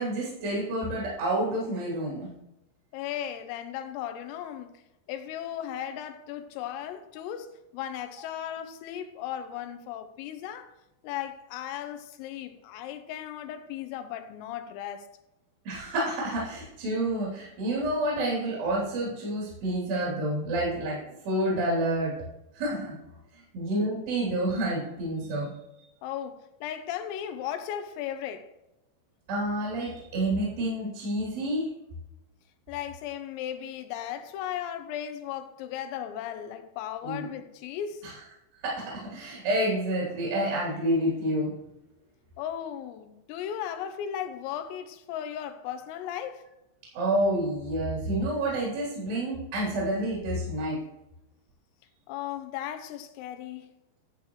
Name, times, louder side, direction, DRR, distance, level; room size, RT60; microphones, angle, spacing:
voice 1, 0.0-2.3 15.6-22.1 22.5-23.0 23.3-25.5 29.3-31.7 37.0-37.3 38.0-38.2 38.6-41.5 46.9-50.8, right 1 dB, 55° right, 5.0 m, -29 dB
voice 2, 2.9-4.7 5.1-10.7 11.0-15.1 26.0-28.5 32.7-38.0 42.4-46.4 52.1-53.7, left 10 dB, 85° left, 3.4 m, -36 dB
13.0 x 8.1 x 3.1 m
omnidirectional pair, 5.9 m